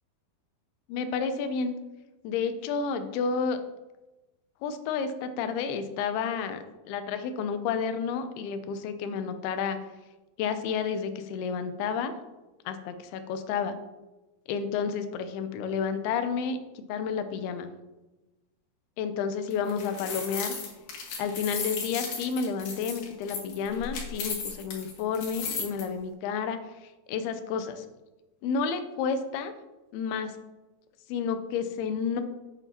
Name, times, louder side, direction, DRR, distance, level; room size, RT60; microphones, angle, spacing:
voice 1, 0.9-1.7 2.2-3.6 4.6-6.6 6.9-9.8 10.4-12.1 12.7-13.7 14.5-17.7 19.0-20.5 21.2-26.6 27.1-27.9 28.4-29.5 29.9-30.4 31.1-32.2, left 6 dB, 80° left, 9 dB, 2.6 m, -30 dB
sound 1, 19.5-25.8, left 5 dB, 60° left, 2.7 m, -35 dB
9.0 x 7.6 x 2.8 m, 1.1 s
omnidirectional pair, 4.6 m